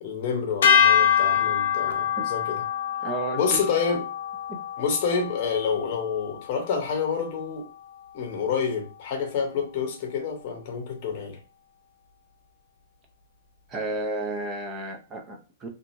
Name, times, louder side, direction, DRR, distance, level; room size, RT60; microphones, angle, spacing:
voice 1, 0.0-2.6 3.4-4.0 4.8-7.7 8.1-11.4, left 6 dB, 35° left, 0.8 m, -28 dB
sound 1, 0.6-7.0, left 8 dB, 70° left, 0.5 m, -25 dB
voice 2, 3.0-3.6 4.5-4.6 13.7-15.7, right 2 dB, 15° right, 0.4 m, -32 dB
2.8 x 2.5 x 2.5 m
hypercardioid pair, 175°, 0 cm